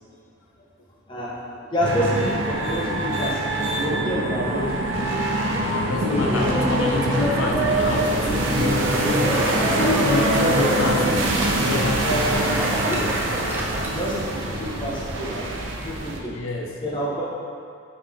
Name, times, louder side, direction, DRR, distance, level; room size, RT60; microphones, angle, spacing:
voice 1, 1.6-4.9 5.1-5.2 12.0-12.4 12.6-13.1 13.9-15.5 15.8-16.3 16.8-17.3, equal, 25° left, -7 dB, 1.2 m, -28 dB
sound 1, 1.8-16.2, right 1 dB, 70° right, 0.8 m, -24 dB
voice 2, 5.8-9.0 9.7-11.2 11.5-12.1 16.3-16.8, left 2 dB, 80° left, 1 dB, 0.5 m, -27 dB
Laughter, 6.0-14.1, equal, 10° right, 0.5 m, -27 dB
sound 2, 6.6-11.8, equal, 35° right, 0.8 m, -34 dB
8.9 x 3.4 x 3.5 m, 2.4 s
head